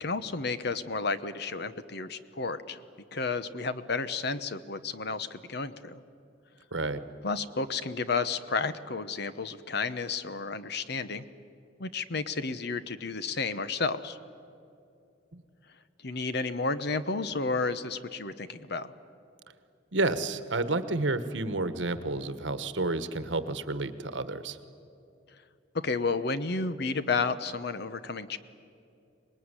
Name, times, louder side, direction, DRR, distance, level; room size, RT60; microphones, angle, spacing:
voice 1, 0.0-2.8 3.1-6.0 7.2-11.2 11.8-14.2 16.0-18.9 25.8-28.4, left 4 dB, 65° left, 13 dB, 1.0 m, -32 dB
voice 2, 6.7-7.0 15.3-15.4 19.9-24.6, right 2 dB, 85° right, 12 dB, 1.3 m, -30 dB
25.0 x 20.5 x 9.8 m, 2.7 s
head